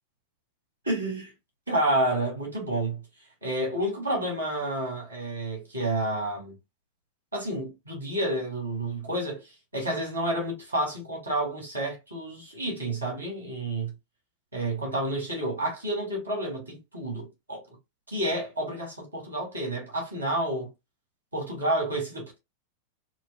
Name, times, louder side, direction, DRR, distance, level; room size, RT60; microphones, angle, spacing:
voice 1, 0.8-1.3 1.7-3.0 3.4-6.6 7.3-9.4 9.7-13.9 14.5-17.6 18.1-20.7 21.3-22.4, right 1 dB, 85° right, 2.5 m, -30 dB
5.9 x 2.4 x 2.5 m
figure-of-eight pair, 90°, 0 cm